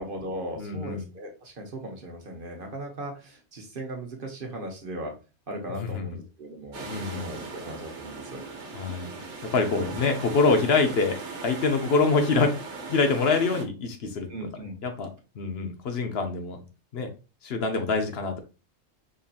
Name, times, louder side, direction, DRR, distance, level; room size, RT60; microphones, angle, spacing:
voice 1, 0.0-5.2 5.5-8.4 9.8-10.0 14.3-14.8, right 1 dB, 50° right, 2 dB, 1.1 m, -38 dB
voice 2, 0.6-1.1 5.8-6.1 6.8-7.3 8.7-9.1 9.5-12.5 12.9-14.5 14.8-15.1 15.4-16.6 16.9-17.1 17.4-18.4, left 4 dB, 65° left, 5 dB, 0.9 m, -25 dB
sound 1, 6.7-13.6, right 4 dB, 85° right, 1.3 m, -39 dB
5.3 x 2.7 x 2.4 m, 0.31 s
omnidirectional pair, 1.2 m